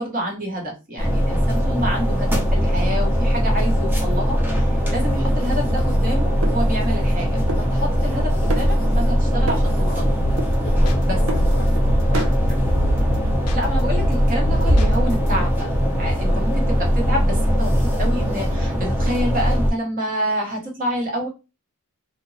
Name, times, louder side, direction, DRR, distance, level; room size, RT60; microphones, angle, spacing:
voice 1, 0.0-10.2 11.0-11.2 13.5-15.7 16.0-21.3, equal, 40° right, 0 dB, 0.9 m, -28 dB
sound 1, 1.0-19.7, equal, 10° right, 0.5 m, -20 dB
sound 2, 5.2-7.2 7.5-8.2 8.5-9.2 9.5-10.1 10.4-11.9 12.1-12.4, right 2 dB, 75° right, 0.6 m, -32 dB
sound 3, 10.2-10.6 10.9-12.5 12.8-13.2 13.5-15.3, equal, 90° left, 0.4 m, -29 dB
voice 2, 10.6-12.8 16.3-16.4, left 3 dB, 40° left, -1 dB, 0.5 m, -37 dB
2.8 x 2.2 x 2.6 m, 0.28 s
head